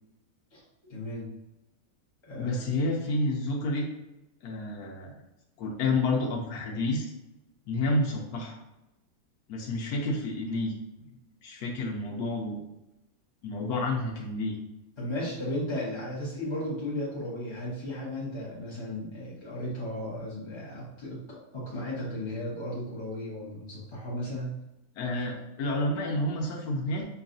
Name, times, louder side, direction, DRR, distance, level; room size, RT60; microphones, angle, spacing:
voice 1, 0.5-1.3 2.3-2.6 15.0-24.5, left 1 dB, 20° left, -8 dB, 0.9 m, -35 dB
voice 2, 2.4-3.8 4.4-5.1 5.6-7.1 7.7-8.6 9.5-10.7 11.4-12.6 13.4-14.5 25.0-27.1, left 2 dB, 90° left, -1 dB, 1.2 m, -29 dB
5.6 x 2.3 x 2.5 m, 0.94 s
omnidirectional pair, 1.6 m